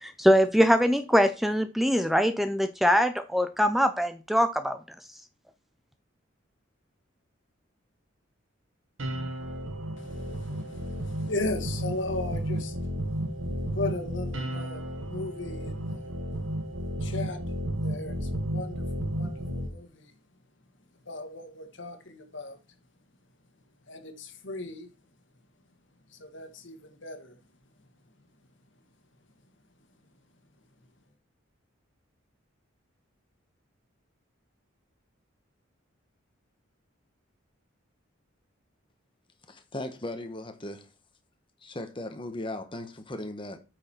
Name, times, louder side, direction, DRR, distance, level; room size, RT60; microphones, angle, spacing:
voice 1, 0.0-4.8, equal, ahead, 0.5 m, -23 dB
sound 1, 9.0-19.7, equal, 80° right, 1.7 m, -33 dB
voice 2, 10.0-12.9 13.7-16.1 17.0-17.4 17.8-20.1 21.0-22.6 23.9-24.9 26.1-27.4, left 2 dB, 65° left, 1.7 m, -37 dB
voice 3, 39.5-40.9 41.6-43.6, left 1 dB, 25° left, 1.2 m, -37 dB
8.7 x 6.4 x 4.5 m
head